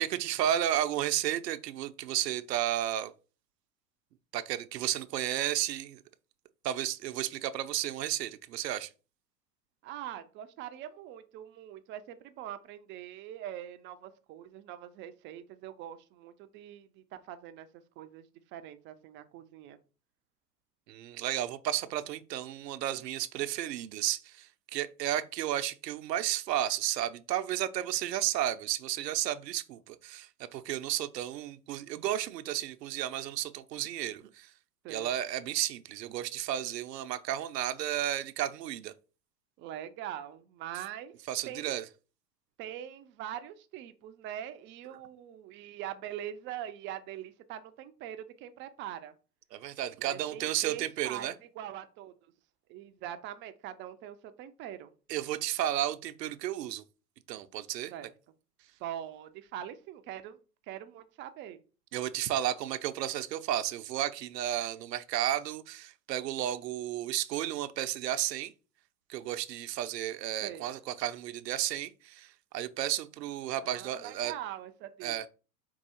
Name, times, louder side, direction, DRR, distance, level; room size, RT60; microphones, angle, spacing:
voice 1, 0.0-3.1 4.3-6.0 6.6-8.9 20.9-34.5 34.9-38.9 41.3-41.8 49.5-51.3 55.1-56.8 57.3-57.9 61.9-68.5 69.1-74.3 75.0-75.3, right 12 dB, 90° right, 0.6 m, -33 dB
voice 2, 9.8-19.8 34.8-35.1 39.6-41.2 41.5-41.8 42.6-49.1 50.0-51.3 51.6-52.3 52.7-54.9 57.9-58.1 58.8-60.4 60.7-61.6 70.4-70.7 73.6-75.3, right 11 dB, 30° right, 0.3 m, -43 dB
4.6 x 2.4 x 4.2 m
hypercardioid pair, 100°, 48 cm